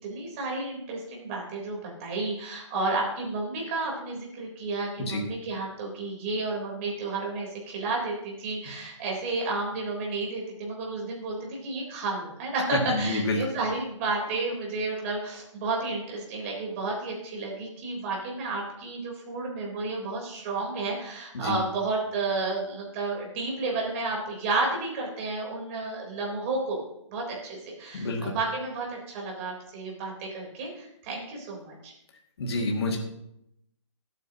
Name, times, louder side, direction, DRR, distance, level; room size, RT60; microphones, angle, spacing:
voice 1, 0.0-26.8 27.1-31.9, right 3 dB, 25° right, -2 dB, 3.8 m, -31 dB
voice 2, 12.7-13.5 21.3-21.6 27.9-28.3 32.4-33.0, left 2 dB, 55° left, 1 dB, 2.2 m, -28 dB
21.5 x 9.2 x 2.9 m, 0.79 s
hypercardioid pair, 165°, 16 cm